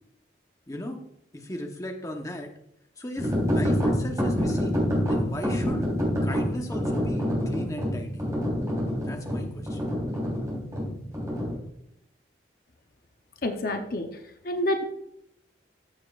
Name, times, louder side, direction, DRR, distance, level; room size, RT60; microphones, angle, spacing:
voice 1, 0.7-1.0 1.3-2.5 3.0-4.7 5.1-5.9 6.2-8.2 9.0-9.8, left 1 dB, 20° left, 3 dB, 0.9 m, -36 dB
sound 1, 3.2-11.6, equal, 15° right, 3.5 m, -27 dB
voice 2, 13.4-14.1 14.4-14.8, left 1 dB, 50° left, 6 dB, 0.7 m, -27 dB
14.0 x 6.8 x 2.4 m, 0.75 s
head